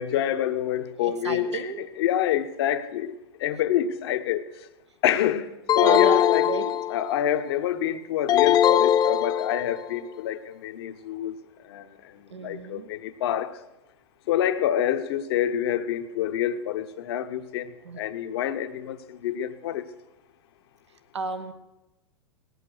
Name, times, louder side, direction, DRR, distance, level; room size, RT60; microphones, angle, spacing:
voice 1, 0.0-3.1 3.4-4.4 5.0-6.5 6.9-11.4 11.6-13.6 14.3-19.9, left 10 dB, 65° left, 1.0 m, -27 dB
voice 2, 1.0-1.8 5.8-6.7 12.3-12.9 17.8-18.0 21.1-21.5, right 5 dB, 85° right, 1.1 m, -32 dB
sound 1, 5.7-7.2 8.3-9.9, left 11 dB, 25° left, 0.5 m, -21 dB
18.5 x 8.2 x 6.5 m
hypercardioid pair, 105°, 14 cm